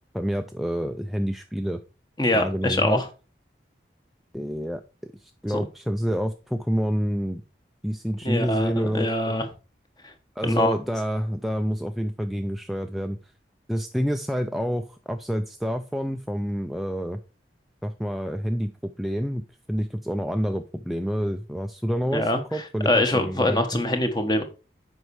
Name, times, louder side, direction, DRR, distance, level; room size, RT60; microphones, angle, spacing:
voice 1, 0.1-1.8 2.3-3.0 4.3-4.8 5.2-7.4 7.8-9.4 10.4-13.2 13.7-17.2 17.8-23.8, equal, ahead, 6 dB, 0.4 m, -28 dB
voice 2, 2.2-3.1 8.2-9.5 10.4-10.7 22.1-22.4 22.8-24.4, left 1 dB, 25° left, 6 dB, 1.2 m, -23 dB
7.9 x 5.4 x 4.8 m, 0.33 s
head